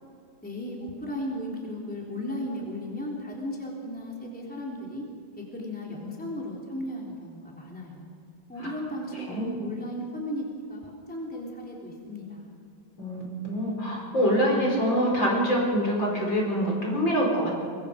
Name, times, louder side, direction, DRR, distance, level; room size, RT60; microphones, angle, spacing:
voice 1, 0.4-5.0 5.5-8.1 8.5-10.4 10.7-12.5, left 1 dB, 5° left, -3 dB, 3.4 m, -35 dB
voice 2, 13.0-17.5, equal, 70° left, -2 dB, 5.7 m, -25 dB
23.5 x 23.5 x 5.2 m, 2.2 s
omnidirectional pair, 2.1 m